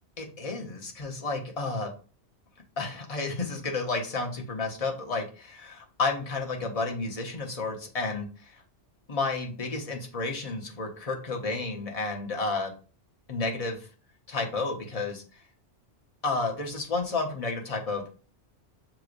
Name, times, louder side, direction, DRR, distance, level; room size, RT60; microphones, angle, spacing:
voice 1, 0.2-1.9 2.8-8.6 9.1-12.7 13.3-13.9 14.3-15.2 16.2-18.1, left 3 dB, 35° left, 2 dB, 0.9 m, -31 dB
6.4 x 2.9 x 2.5 m, 0.37 s
omnidirectional pair, 1.2 m